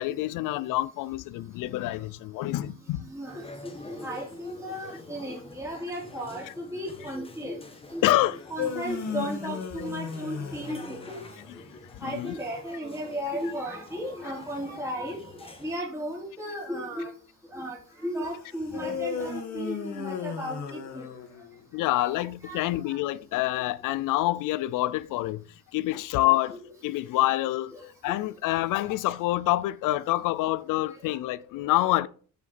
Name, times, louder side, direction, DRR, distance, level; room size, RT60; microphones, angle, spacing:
voice 1, 0.0-3.1 8.0-8.4 12.1-12.3 21.7-25.4 25.7-27.7 28.0-32.1, left 16 dB, 80° left, 0.5 m, -27 dB
voice 2, 3.1-3.4 3.8-7.6 7.9-8.0 8.5-11.2 12.0-17.1 17.5-21.0 22.0-23.0 26.5-26.6 27.7-27.8 31.6-31.7, equal, 10° right, 3.1 m, -35 dB
sound 1, 3.3-15.7, left 2 dB, 15° left, 1.3 m, -47 dB
sound 2, 8.3-11.6 18.7-21.7, left 6 dB, 60° left, 2.2 m, -35 dB
7.5 x 7.0 x 4.3 m
cardioid pair, 105°, 31 cm